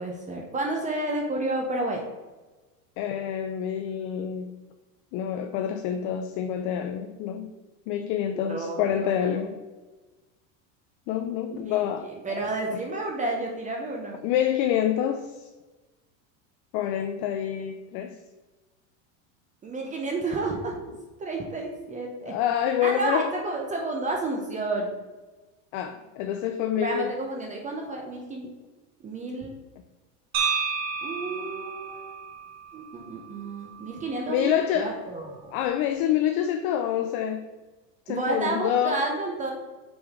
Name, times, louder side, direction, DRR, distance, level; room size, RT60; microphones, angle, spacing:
voice 1, 0.0-2.0 8.4-9.4 11.5-11.6 12.0-14.2 19.6-20.8 21.2-22.3 22.8-24.9 26.8-28.5 29.0-29.5 31.0-32.1 32.7-35.5 38.1-39.5, right 2 dB, 20° right, 0 dB, 0.7 m, -31 dB
voice 2, 3.0-4.6 5.1-7.5 7.9-9.6 11.1-12.4 14.2-15.5 16.7-18.2 22.2-23.3 25.7-27.1 34.3-35.0 35.5-37.5 38.1-39.0, left 10 dB, 45° left, 6 dB, 0.5 m, -27 dB
sound 1, 30.3-34.4, right 5 dB, 50° right, 1.6 m, -32 dB
6.0 x 3.9 x 4.8 m, 1.2 s
supercardioid pair, 145°, 41 cm